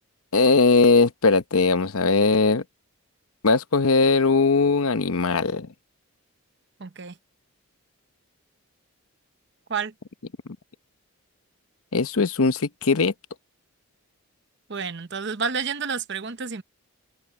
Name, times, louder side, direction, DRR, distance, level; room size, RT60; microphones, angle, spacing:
voice 1, 0.3-2.6 3.4-5.7 11.9-13.1, left 4 dB, 75° left, 0.9 m, -19 dB
voice 2, 6.8-7.1 9.7-9.9 14.7-16.6, right 5 dB, 50° right, 0.8 m, -29 dB
open air
head